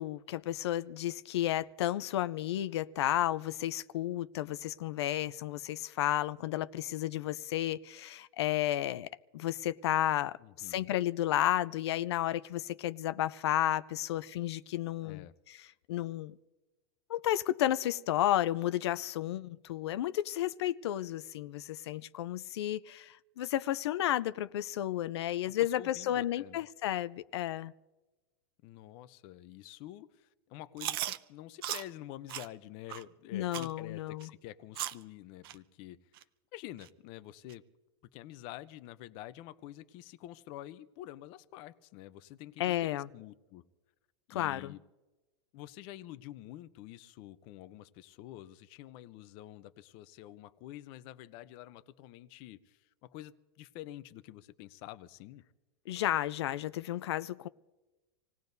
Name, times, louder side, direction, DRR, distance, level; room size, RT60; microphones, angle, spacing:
voice 1, 0.0-16.3 17.1-27.7 33.3-34.3 42.6-43.1 44.3-44.7 55.9-57.5, left 13 dB, 90° left, 0.5 m, -32 dB
voice 2, 10.4-10.9 15.0-15.3 25.6-26.6 28.6-36.0 36.5-37.6 38.1-43.6 44.3-44.8 45.5-55.4, left 14 dB, 40° left, 0.6 m, -48 dB
Chewing mastication, 30.8-31.2 31.6-31.8 32.3-32.5 32.9-33.0 33.5-33.7 34.2-34.3 34.7-35.0 35.4-35.5 36.2-36.3 36.8-36.9 37.5-37.6, right 13 dB, 60° right, 0.7 m, -36 dB
27.0 x 17.5 x 2.7 m
supercardioid pair, 165°, 13 cm